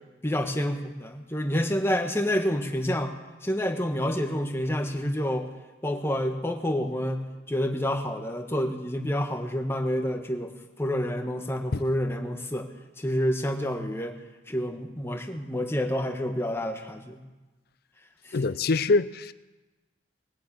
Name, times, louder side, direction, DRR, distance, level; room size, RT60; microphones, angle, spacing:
voice 1, 0.2-3.1 3.4-5.5 5.8-10.5 10.8-12.7 13.0-14.2 14.5-17.2 18.3-18.4, equal, 15° left, 1.2 m, -28 dB
voice 2, 18.3-19.3, left 3 dB, 55° left, 0.5 m, -24 dB
20.0 x 7.6 x 8.6 m
head